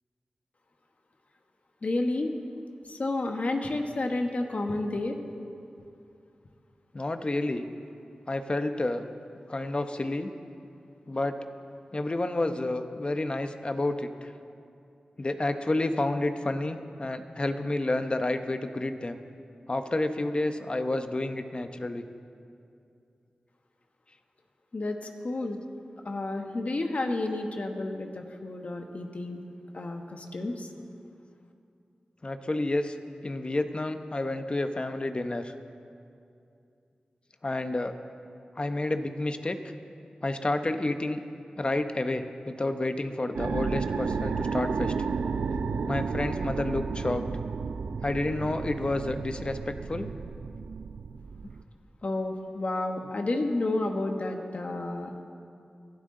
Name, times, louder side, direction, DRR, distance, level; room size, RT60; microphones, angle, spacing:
voice 1, 1.8-2.3 2.9-5.2 24.7-25.0 25.2-25.6 26.0-29.4 29.7-30.7 52.0-55.2, left 2 dB, 60° left, 4 dB, 1.2 m, -30 dB
voice 2, 6.9-7.7 8.3-9.0 9.5-10.3 11.1-11.4 11.9-14.3 15.2-19.2 19.7-22.0 32.2-32.9 33.2-35.5 37.4-38.0 38.6-39.6 40.2-41.2 41.6-44.9 45.9-47.3 48.0-50.1, left 2 dB, 40° left, 8 dB, 0.9 m, -30 dB
sound 1, 43.4-51.6, right 5 dB, 80° right, 0.4 m, -32 dB
21.5 x 12.5 x 3.8 m, 2.5 s
cardioid pair, 50°, 3 cm